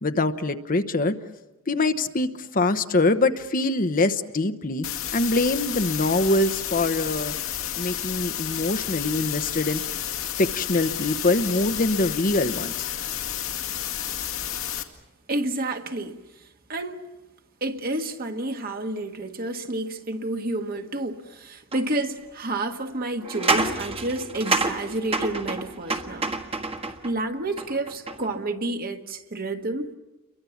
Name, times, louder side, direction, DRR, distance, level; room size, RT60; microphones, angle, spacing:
voice 1, 0.0-1.1 1.7-4.9 5.1-7.3 7.8-9.8 10.4-12.9, left 2 dB, 40° left, 9 dB, 1.0 m, -24 dB
sound 1, 4.8-14.8, left 10 dB, 75° left, 2.1 m, -31 dB
voice 2, 15.3-16.2 16.7-17.0 17.6-26.3 27.0-29.9, right 2 dB, 45° right, 5 dB, 1.6 m, -30 dB
sound 2, 21.7-21.8 23.2-27.1 27.6-28.3, right 3 dB, 25° right, 1.5 m, -28 dB
29.5 x 23.0 x 7.2 m, 1.0 s
head